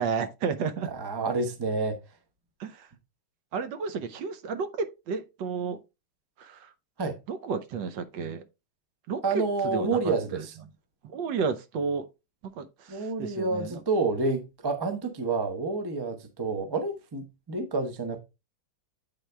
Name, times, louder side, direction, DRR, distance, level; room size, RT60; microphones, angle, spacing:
voice 1, 0.0-0.9 2.6-2.9 3.5-5.8 6.4-6.7 7.3-8.4 9.1-10.4 11.1-12.0 12.5-13.8, right 5 dB, 70° right, 1.4 m, -32 dB
voice 2, 0.9-2.0 7.0-7.2 9.2-10.5 12.9-18.2, right 3 dB, 30° right, 0.4 m, -29 dB
9.0 x 3.9 x 3.3 m
omnidirectional pair, 2.2 m